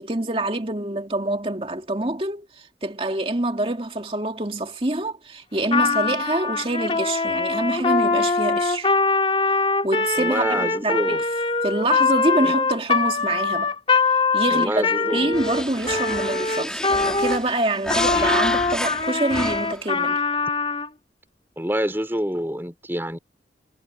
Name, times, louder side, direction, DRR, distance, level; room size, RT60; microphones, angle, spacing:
voice 1, 0.0-8.9 9.8-11.2 11.6-13.7 14.3-20.2, right 2 dB, 30° right, 2.4 m, -26 dB
Trumpet, 5.6-17.4 17.9-20.9, left 4 dB, 30° left, 2.9 m, -23 dB
voice 2, 10.2-11.2 12.4-12.5 14.5-15.3 21.6-23.2, equal, 10° right, 5.5 m, -26 dB
sound 1, 15.3-19.9, left 1 dB, 5° left, 2.8 m, -30 dB
head